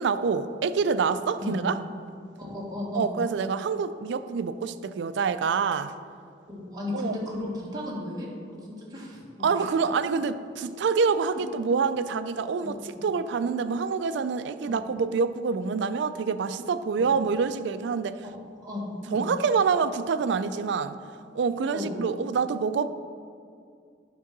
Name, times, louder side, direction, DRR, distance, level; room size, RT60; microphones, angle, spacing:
voice 1, 0.0-1.8 2.9-5.9 6.9-7.1 9.4-12.8 13.0-18.2 19.1-21.0 21.4-22.9, right 5 dB, 65° right, 12 dB, 0.4 m, -26 dB
voice 2, 2.4-3.1 6.5-8.3 8.6-9.9 12.6-13.0 14.7-14.8 17.0-17.1 18.2-19.3 21.7-21.9, left 1 dB, 20° right, -5 dB, 1.6 m, -35 dB
10.0 x 3.7 x 5.9 m, 2.3 s
head